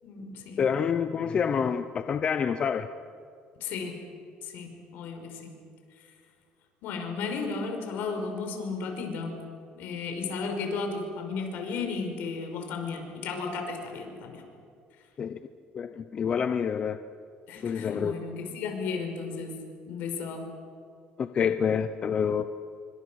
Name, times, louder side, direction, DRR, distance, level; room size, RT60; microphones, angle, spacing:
voice 1, 0.0-0.7 3.6-4.0 4.4-5.5 6.8-9.4 9.8-14.4 17.5-19.5 19.9-20.5, left 4 dB, 70° left, 4 dB, 5.5 m, -34 dB
voice 2, 0.6-2.9 15.2-15.4 15.7-17.0 17.6-18.1 21.2-22.5, left 7 dB, 35° left, 10 dB, 0.8 m, -27 dB
27.5 x 24.5 x 6.4 m, 2.4 s
cardioid pair, 155°, 3 cm